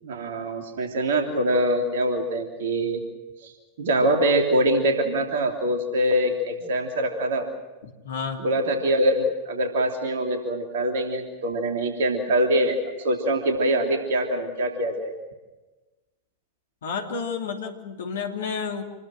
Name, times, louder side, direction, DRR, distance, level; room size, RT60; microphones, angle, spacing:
voice 1, 0.0-3.0 3.4-3.5 3.8-7.5 8.4-15.1, right 1 dB, 60° right, 3 dB, 3.1 m, -24 dB
voice 2, 7.8-8.4 16.8-18.8, left 5 dB, 65° left, 3 dB, 2.9 m, -31 dB
28.0 x 20.5 x 6.2 m, 1.1 s
figure-of-eight pair, 90°, 0 cm